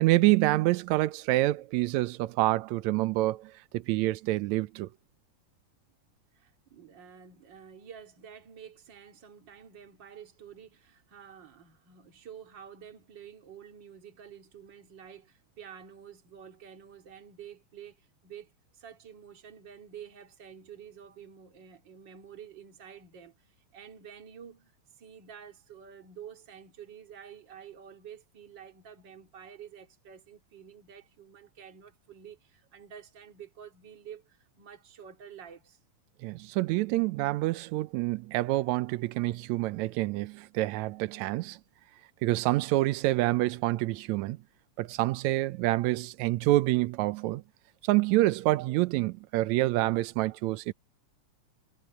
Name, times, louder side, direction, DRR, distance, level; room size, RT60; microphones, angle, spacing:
voice 1, 0.0-4.9 36.2-41.6 42.2-44.4 44.8-47.4 47.8-50.7, right 18 dB, 75° right, 1.8 m, -27 dB
voice 2, 6.3-35.8, right 8 dB, 40° right, 2.8 m, -49 dB
omnidirectional pair, 3.5 m